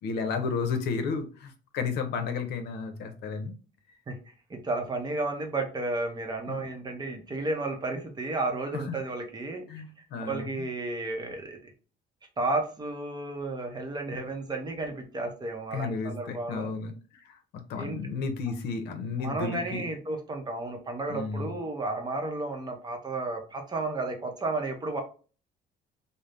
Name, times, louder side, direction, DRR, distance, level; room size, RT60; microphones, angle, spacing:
voice 1, 0.0-3.5 6.5-6.7 8.7-8.9 9.7-10.7 15.7-19.9 21.1-21.5, left 5 dB, 75° left, 6 dB, 0.6 m, -33 dB
voice 2, 4.1-11.7 12.4-16.7 17.8-18.0 19.2-25.0, right 2 dB, 25° right, 3 dB, 0.7 m, -33 dB
2.6 x 2.0 x 3.3 m, 0.37 s
cardioid pair, 110°, 17 cm